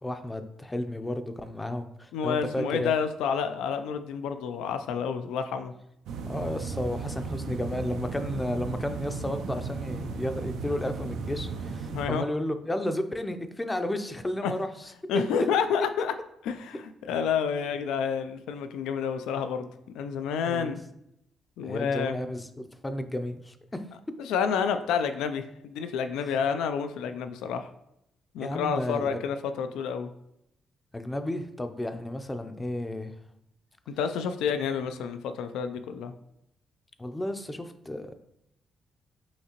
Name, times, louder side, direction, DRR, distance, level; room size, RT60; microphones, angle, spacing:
voice 1, 0.0-3.0 6.3-14.7 20.5-20.7 21.6-22.5 22.8-23.8 26.2-26.3 28.4-29.2 30.9-33.2 37.0-38.1, left 1 dB, 15° left, 8 dB, 0.5 m, -32 dB
voice 2, 2.1-5.7 11.9-12.2 14.4-14.5 15.1-16.1 16.5-19.7 19.9-20.8 21.6-22.2 24.2-27.7 28.3-30.1 33.9-36.1, left 7 dB, 90° left, 9 dB, 0.3 m, -29 dB
sound 1, 6.1-12.1, right 4 dB, 80° right, 0.4 m, -35 dB
5.7 x 2.8 x 2.9 m, 0.79 s
cardioid pair, 90°, 0 cm